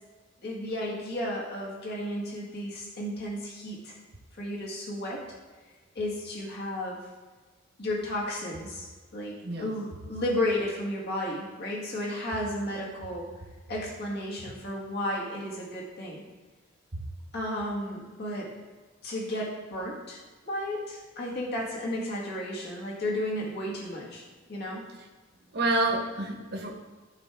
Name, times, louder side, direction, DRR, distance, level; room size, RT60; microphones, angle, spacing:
voice 1, 0.4-3.9 4.4-5.2 6.0-7.0 7.8-8.9 9.1-13.3 13.7-16.2 17.3-18.5 19.0-20.2 20.5-24.2 24.5-24.8, left 1 dB, 55° left, -4 dB, 1.8 m, -33 dB
voice 2, 25.5-26.7, right 2 dB, 55° right, -2 dB, 1.4 m, -28 dB
13.5 x 4.5 x 3.7 m, 1.3 s
head